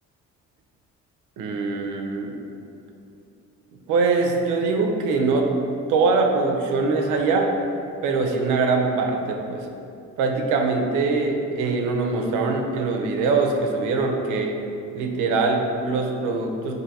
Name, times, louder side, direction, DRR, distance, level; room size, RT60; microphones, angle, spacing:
voice 1, 1.4-2.4 3.9-5.5 5.9-7.5 8.0-9.7 10.2-14.6 14.9-16.8, right 3 dB, 90° right, 2 dB, 0.5 m, -23 dB
4.5 x 2.6 x 2.6 m, 2.6 s
cardioid pair, 90°, 30 cm